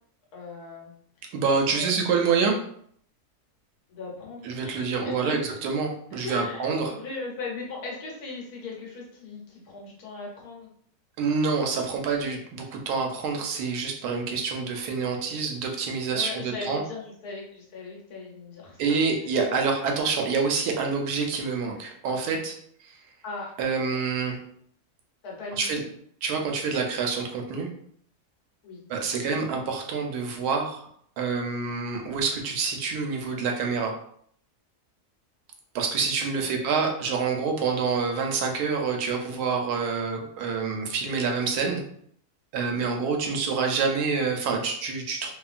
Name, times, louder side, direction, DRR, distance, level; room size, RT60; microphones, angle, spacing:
voice 1, 0.3-0.9 1.5-1.9 3.9-5.4 6.2-10.7 16.1-19.1 19.5-19.6 23.2-23.5 23.8-23.9 25.2-25.8 28.6-28.8 36.4-36.9 42.7-43.0, left 3 dB, 70° left, -2 dB, 1.3 m, -38 dB
voice 2, 1.3-2.6 4.4-6.9 11.2-16.8 18.8-22.5 22.8-23.0 23.6-24.4 25.5-25.8 26.2-27.7 28.9-30.9 31.2-33.9 35.7-41.8 42.5-45.3, right 5 dB, 80° right, 2 dB, 1.1 m, -27 dB
2.8 x 2.4 x 2.4 m, 0.64 s
omnidirectional pair, 1.7 m